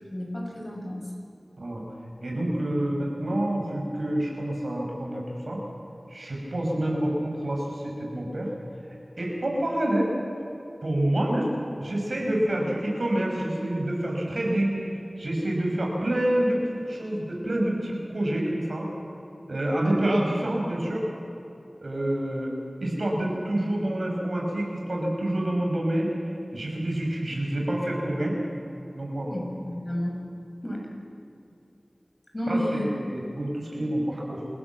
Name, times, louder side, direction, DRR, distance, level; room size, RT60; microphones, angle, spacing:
voice 1, 0.1-1.1 29.3-30.2 30.6-30.9 32.3-32.9, equal, 40° left, -1 dB, 6.8 m, -31 dB
voice 2, 2.2-5.6 6.1-8.5 9.2-10.1 10.8-11.5 11.8-18.9 19.5-21.1 21.8-22.5 22.8-26.1 26.5-28.3 28.9-29.4 32.5-34.5, right 1 dB, 75° right, -1 dB, 5.8 m, -27 dB
28.0 x 16.5 x 7.5 m, 2.9 s
wide cardioid pair, 40°, 0 cm